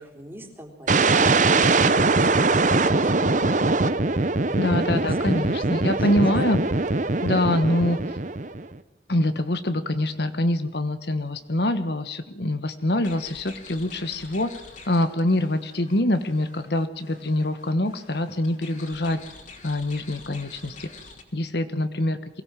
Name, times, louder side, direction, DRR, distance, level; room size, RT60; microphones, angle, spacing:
voice 1, 0.0-2.5 2.9-4.0 4.4-6.1, equal, 15° right, 2 dB, 3.7 m, -43 dB
sound 1, 0.9-8.7, right 3 dB, 45° right, 1.0 m, -22 dB
voice 2, 4.6-6.6 7.2-8.0 9.1-14.5 14.9-19.2 19.6-20.9 21.3-22.2, left 1 dB, 65° left, 10 dB, 1.3 m, -24 dB
sound 2, 13.0-21.2, left 4 dB, 45° left, 3.2 m, -47 dB
23.0 x 17.5 x 7.6 m, 0.94 s
head